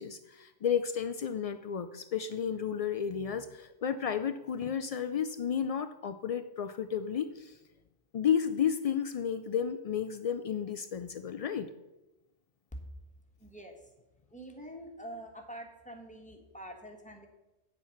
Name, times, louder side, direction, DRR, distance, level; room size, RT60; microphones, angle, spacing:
voice 1, 0.0-7.6 8.1-11.7, left 8 dB, 65° left, 10 dB, 0.3 m, -32 dB
voice 2, 13.4-13.7 14.3-17.3, right 1 dB, 5° left, 2 dB, 1.5 m, -45 dB
9.1 x 7.2 x 5.8 m, 1.0 s
omnidirectional pair, 1.2 m